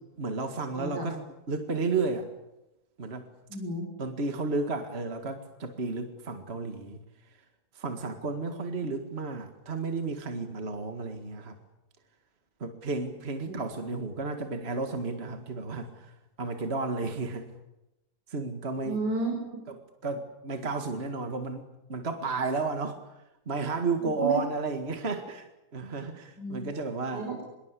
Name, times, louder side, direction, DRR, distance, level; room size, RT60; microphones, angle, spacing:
voice 1, 0.2-1.2 1.5-2.3 3.0-3.3 4.0-7.0 7.8-11.6 12.6-16.1 16.4-17.5 18.3-19.0 20.0-23.0 23.5-27.3, right 3 dB, 40° right, 6 dB, 2.2 m, -32 dB
voice 2, 0.8-1.1 3.5-3.9 13.5-13.6 18.9-19.6 24.0-24.4 26.4-26.8 27.1-27.4, right 2 dB, 85° right, 0 dB, 5.7 m, -33 dB
25.0 x 23.0 x 8.3 m, 0.95 s
omnidirectional pair, 1.8 m